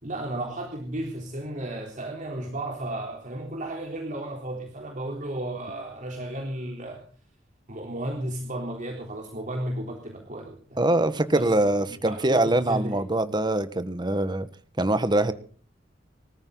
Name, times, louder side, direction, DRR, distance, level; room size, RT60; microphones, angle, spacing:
voice 1, 0.0-7.0 7.7-10.8 11.3-11.6 11.9-13.0, right 1 dB, 45° right, 1 dB, 3.6 m, -34 dB
voice 2, 10.8-14.5 14.8-15.3, right 1 dB, 25° right, 11 dB, 1.4 m, -23 dB
25.5 x 14.0 x 4.0 m, 0.43 s
head